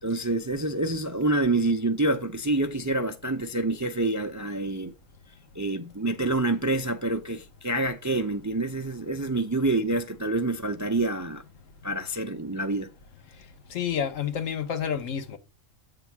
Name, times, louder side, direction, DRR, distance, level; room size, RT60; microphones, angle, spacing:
voice 1, 0.0-4.9 5.6-11.4 11.8-12.9, right 2 dB, 25° right, 0.3 m, -27 dB
voice 2, 13.7-15.4, left 8 dB, 80° left, 1.3 m, -29 dB
8.1 x 3.9 x 5.8 m
omnidirectional pair, 1.3 m